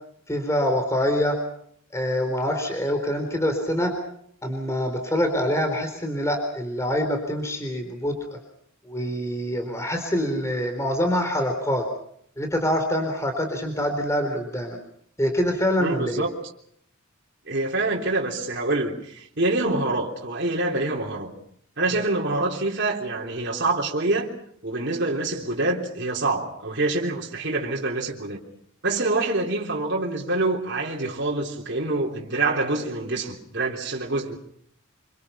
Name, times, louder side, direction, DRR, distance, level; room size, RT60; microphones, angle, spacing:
voice 1, 0.3-1.4 1.9-3.9 4.4-8.2 8.9-11.9 12.4-14.8 15.2-16.3, equal, 15° left, 3.9 m, -25 dB
voice 2, 15.8-16.3 17.5-21.3 21.8-24.3 24.6-28.4 28.8-34.4, right 2 dB, 55° right, 3.6 m, -26 dB
27.0 x 25.5 x 5.8 m
head